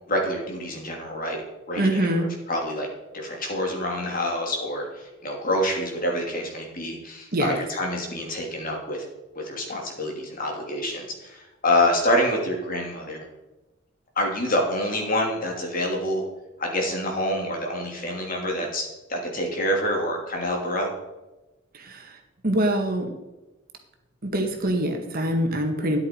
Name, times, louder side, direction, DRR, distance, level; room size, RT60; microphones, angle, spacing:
voice 1, 0.1-1.4 1.7-2.9 3.1-9.1 9.3-13.2 14.2-16.2 16.6-20.9, left 1 dB, 45° left, 0 dB, 3.0 m, -27 dB
voice 2, 1.8-2.3 7.3-7.5 21.7-22.2 22.4-23.1 24.2-26.0, right 1 dB, 45° right, 4 dB, 1.8 m, -24 dB
13.0 x 10.0 x 4.6 m, 1.1 s
head